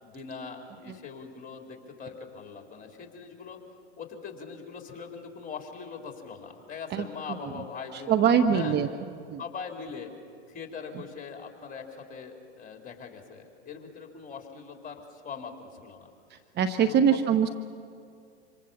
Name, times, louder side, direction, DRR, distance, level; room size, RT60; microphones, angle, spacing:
voice 1, 0.0-8.2 8.5-8.8 9.4-10.1 10.5-16.1 16.8-17.2, left 5 dB, 25° left, 3 dB, 4.2 m, -41 dB
voice 2, 8.1-8.9 9.3-9.4 16.6-17.5, right 7 dB, 30° right, 8 dB, 1.1 m, -22 dB
27.5 x 26.5 x 7.3 m, 2.3 s
figure-of-eight pair, 95°, 33 cm